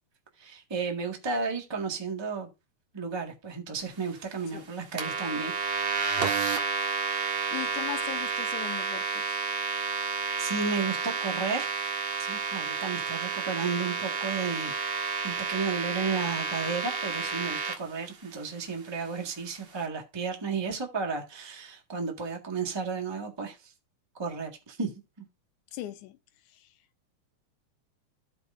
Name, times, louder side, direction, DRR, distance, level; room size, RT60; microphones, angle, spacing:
voice 1, 0.4-2.5 2.9-5.5 10.4-11.9 12.3-14.7 15.2-23.7 24.2-24.9, right 5 dB, 15° right, 1.0 m, -33 dB
sound 1, 5.0-17.7, right 5 dB, 50° right, 2.4 m, -30 dB
voice 2, 7.5-9.4 25.7-26.2 26.5-26.7, left 14 dB, 80° left, 2.3 m, -39 dB
15.5 x 5.2 x 2.6 m
omnidirectional pair, 3.5 m